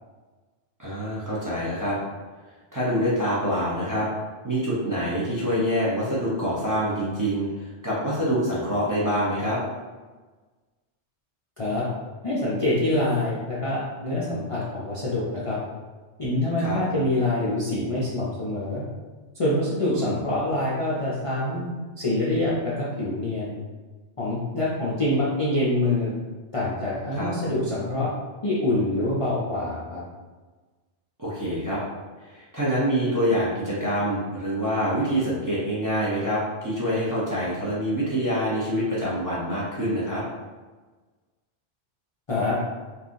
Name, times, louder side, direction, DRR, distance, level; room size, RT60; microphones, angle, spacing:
voice 1, 0.8-2.0 2.7-4.1 4.4-9.6 16.6-16.8 20.0-20.2 27.1-27.3 31.2-31.8 32.2-40.2, equal, 25° right, -9 dB, 0.5 m, -26 dB
voice 2, 12.2-15.6 16.2-18.8 19.3-21.7 22.0-23.5 24.2-26.1 26.5-28.1 28.4-30.0 42.3-42.6, left 1 dB, 45° left, -8 dB, 0.5 m, -25 dB
3.6 x 2.3 x 2.5 m, 1.3 s
omnidirectional pair, 1.2 m